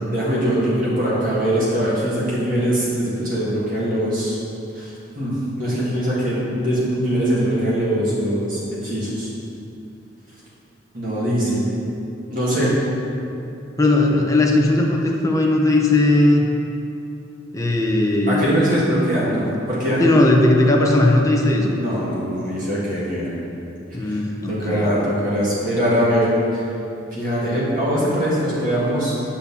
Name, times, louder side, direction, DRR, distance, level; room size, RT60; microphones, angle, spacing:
voice 1, 0.1-4.4 4.7-9.3 10.9-11.7 12.3-12.7 18.3-20.0 21.7-23.3 24.0-24.2 24.5-26.3 26.5-26.6 27.1-29.3, equal, 40° right, -8 dB, 2.0 m, -22 dB
voice 2, 13.8-16.5 17.5-18.6 20.0-21.8 23.9-25.1, left 2 dB, 15° left, 0 dB, 0.8 m, -17 dB
8.5 x 4.3 x 7.1 m, 2.8 s
head